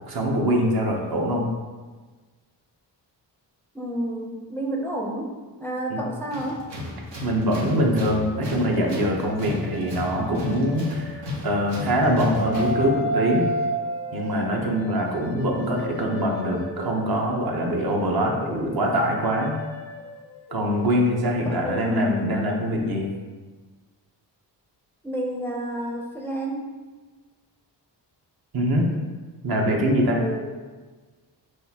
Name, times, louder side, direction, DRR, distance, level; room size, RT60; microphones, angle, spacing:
voice 1, 0.1-1.5 5.9-6.0 7.2-13.5 14.1-19.6 20.5-23.1 28.5-28.9 29.4-30.2, equal, 60° right, 0 dB, 0.8 m, -23 dB
voice 2, 3.7-6.7 21.4-22.4 25.0-26.7 30.2-30.6, right 1 dB, 5° left, -1 dB, 0.4 m, -30 dB
Tools, 6.3-12.9, left 2 dB, 80° right, 1.0 m, -34 dB
sound 1, 7.9-11.5 11.9-17.1 17.5-23.1, equal, 90° left, 0.6 m, -34 dB
6.1 x 2.4 x 2.8 m, 1.4 s
cardioid pair, 90°, 43 cm